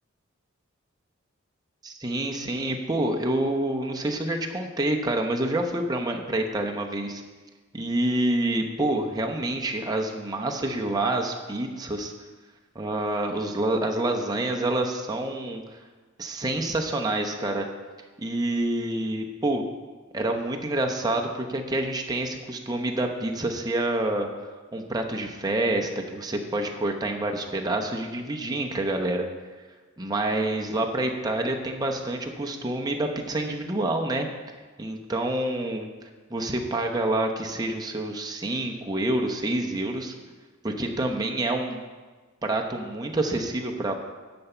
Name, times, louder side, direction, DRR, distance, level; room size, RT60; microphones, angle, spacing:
voice 1, 1.8-7.2 7.7-12.1 12.7-15.6 16.2-17.7 18.2-19.6 20.1-24.3 24.7-29.3 30.0-34.3 34.8-35.9 36.3-40.1 40.6-41.8 42.4-43.9, right 1 dB, 20° right, 2 dB, 0.8 m, -27 dB
10.5 x 4.4 x 7.0 m, 1.4 s
head